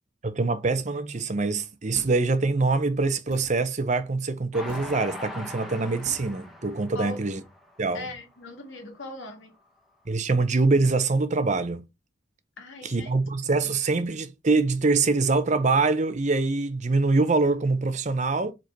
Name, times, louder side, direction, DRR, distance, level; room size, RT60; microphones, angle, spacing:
voice 1, 0.2-7.4 7.8-8.0 10.1-11.8 12.8-18.5, right 3 dB, 35° right, 0.6 m, -24 dB
sound 1, 1.9-2.3 3.3-3.6 4.7-4.9 6.0-6.3, right 2 dB, 60° right, 1.1 m, -43 dB
Train, 4.5-8.0 8.5-8.6 8.9-9.0, left 1 dB, ahead, 1.1 m, -40 dB
voice 2, 7.9-9.5 12.6-13.1 13.6-13.7, left 2 dB, 75° left, 2.1 m, -39 dB
5.0 x 4.3 x 4.5 m
head